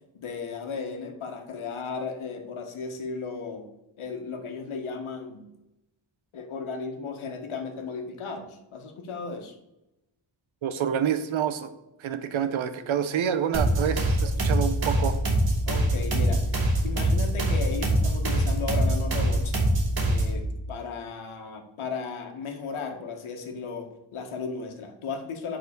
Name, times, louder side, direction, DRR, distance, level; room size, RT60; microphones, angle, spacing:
voice 1, 0.1-3.7 4.0-5.5 6.3-9.5 15.7-16.4 16.8-19.5 20.1-25.6, left 5 dB, 80° left, 4 dB, 1.6 m, -35 dB
voice 2, 10.6-11.7 12.0-15.2, right 8 dB, 75° right, 10 dB, 1.0 m, -27 dB
sound 1, 13.5-20.4, right 1 dB, 50° right, 2.2 m, -24 dB
9.6 x 4.2 x 6.6 m, 0.92 s
wide cardioid pair, 150°, 48 cm